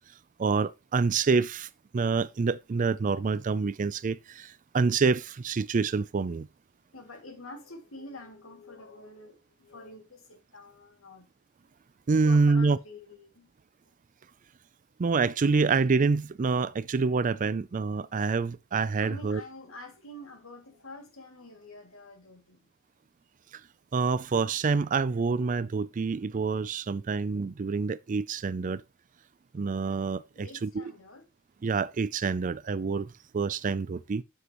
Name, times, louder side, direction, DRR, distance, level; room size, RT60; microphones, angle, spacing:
voice 1, 0.4-6.5 12.1-12.8 15.0-19.4 23.9-28.8 29.5-30.8 31.6-34.2, right 4 dB, 40° right, 0.4 m, -27 dB
voice 2, 6.9-11.3 12.2-13.5 19.0-22.7 30.4-31.3, left 2 dB, 80° left, 2.4 m, -47 dB
9.8 x 7.2 x 3.0 m
head